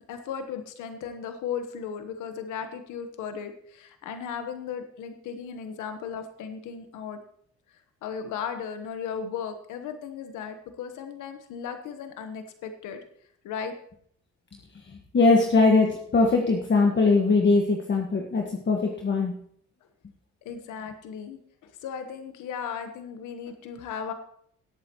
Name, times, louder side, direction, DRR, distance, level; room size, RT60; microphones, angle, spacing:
voice 1, 0.1-7.2 8.0-13.0 13.4-13.8 20.4-24.1, left 7 dB, 90° left, 7 dB, 1.2 m, -36 dB
voice 2, 15.1-19.3, left 3 dB, 40° left, 1 dB, 1.5 m, -21 dB
18.5 x 8.5 x 3.0 m, 0.65 s
cardioid pair, 90°, 30 cm